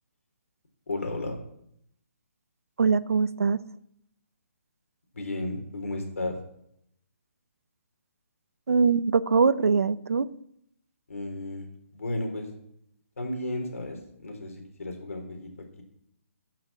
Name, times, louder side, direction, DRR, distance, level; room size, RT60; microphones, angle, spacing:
voice 1, 0.9-1.3 5.1-6.4 11.1-11.7 11.9-12.5 13.2-15.8, left 2 dB, 80° left, 4 dB, 3.7 m, -33 dB
voice 2, 2.8-3.6 8.7-10.3, right 5 dB, 85° right, 15 dB, 0.7 m, -22 dB
12.0 x 6.1 x 7.5 m, 0.74 s
hypercardioid pair, 165°, 8 cm